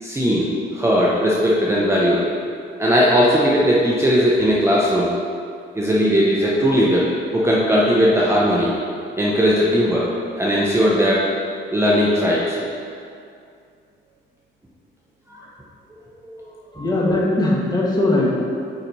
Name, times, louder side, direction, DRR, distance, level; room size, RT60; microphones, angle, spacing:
voice 1, 0.0-2.2 2.8-5.1 5.8-8.7 9.2-10.1 10.4-11.3 11.7-12.6 16.2-16.5, equal, 15° right, -5 dB, 0.8 m, -18 dB
voice 2, 16.7-18.4, left 2 dB, 20° left, -4 dB, 1.4 m, -19 dB
8.9 x 4.3 x 2.7 m, 2.4 s
cardioid pair, 90°, 20 cm